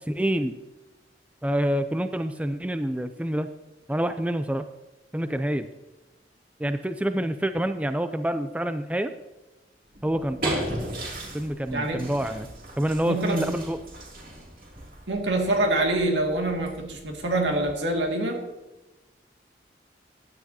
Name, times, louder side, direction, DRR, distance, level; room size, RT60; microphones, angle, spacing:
voice 1, 0.1-0.5 1.4-3.5 3.9-4.7 5.1-5.7 6.6-9.1 10.0-10.6 11.3-12.5 12.8-13.8, right 1 dB, 10° right, 9 dB, 0.4 m, -27 dB
sound 1, 9.9-18.0, right 1 dB, 50° right, 2.8 m, -37 dB
voice 2, 11.7-12.1 13.0-13.5 15.1-18.4, right 2 dB, 90° right, 2 dB, 2.2 m, -25 dB
15.5 x 10.5 x 2.8 m, 1.1 s
head